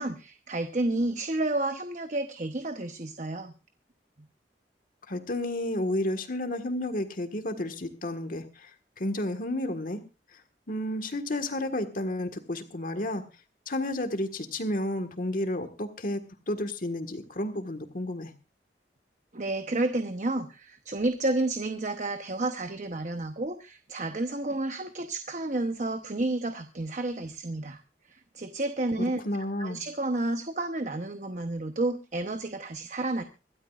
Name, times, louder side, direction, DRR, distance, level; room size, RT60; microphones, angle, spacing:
voice 1, 0.0-3.5 19.3-27.8 28.1-29.2 29.6-33.2, right 2 dB, 45° right, 7 dB, 0.9 m, -31 dB
voice 2, 5.1-8.7 9.0-10.0 10.7-13.2 13.7-18.3 29.2-29.8, left 1 dB, 50° left, 8 dB, 1.6 m, -31 dB
25.5 x 12.5 x 2.5 m, 0.29 s
head